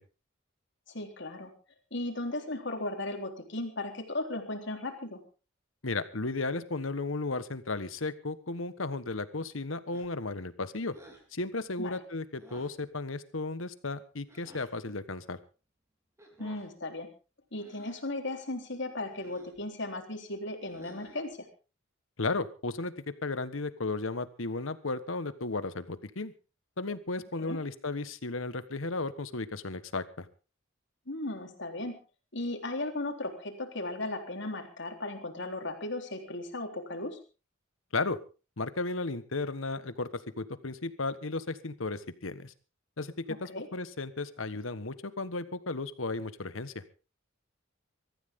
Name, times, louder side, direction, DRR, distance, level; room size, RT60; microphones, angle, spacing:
voice 1, 0.9-1.5 1.9-5.2 11.8-12.0 16.4-17.1 17.5-21.5 27.4-27.6 31.1-32.0 32.3-37.2 43.3-43.7, left 2 dB, 60° left, 4 dB, 3.7 m, -36 dB
voice 2, 5.8-10.9 11.3-15.4 22.2-26.3 26.8-30.3 37.9-38.2 38.6-42.5 43.0-46.8, left 3 dB, 80° left, 13 dB, 1.4 m, -34 dB
sound 1, 9.9-10.3 10.9-11.3 12.4-12.8 14.3-14.7 16.2-16.7 17.5-18.1 19.1-19.6 20.6-21.3, right 1 dB, 15° right, 4.2 m, -55 dB
23.5 x 14.0 x 3.7 m, 0.34 s
head